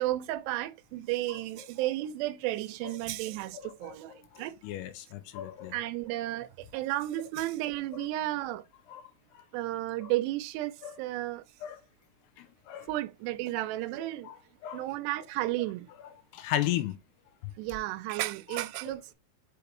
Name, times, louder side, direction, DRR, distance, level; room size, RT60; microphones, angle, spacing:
voice 1, 0.0-4.6 5.7-8.7 9.5-11.4 12.8-14.3 14.7-15.9 17.6-19.1, right 16 dB, 90° right, 2.7 m, -33 dB
voice 2, 3.5-5.8 8.0-8.1 8.9-9.4 10.0-10.1 10.8-11.0 11.6-11.8 12.4-12.9 14.2-14.4 14.6-14.9 16.3-17.0 18.9-19.0, left 12 dB, 90° left, 2.8 m, -36 dB
6.3 x 5.0 x 3.2 m
omnidirectional pair, 4.8 m